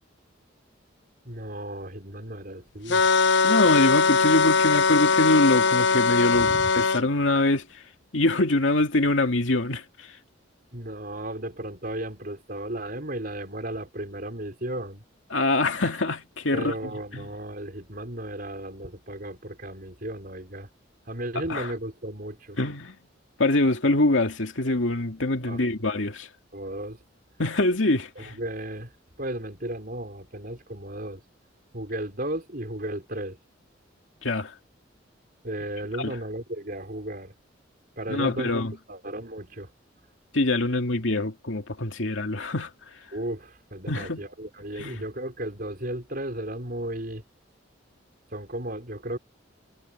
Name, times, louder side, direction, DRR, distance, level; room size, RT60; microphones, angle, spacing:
voice 1, 1.2-3.0 6.3-6.7 10.7-15.0 16.5-20.7 21.1-22.6 25.5-25.6 26.5-27.0 28.2-28.9 29.2-31.2 31.7-33.4 35.4-37.3 38.0-38.5 38.9-39.7 43.1-47.2 48.3-49.2, right 1 dB, 50° right, 5.3 m, -34 dB
sound 1, 2.9-7.0, left 5 dB, 65° left, 0.8 m, -21 dB
voice 2, 3.4-7.8 8.1-10.1 15.3-16.7 17.1-17.2 21.5-21.7 22.6-22.9 23.4-26.3 27.4-28.4 34.2-34.5 36.0-36.2 38.1-38.7 40.3-42.7 43.9-44.2 44.8-45.0, left 2 dB, 85° left, 2.3 m, -24 dB
head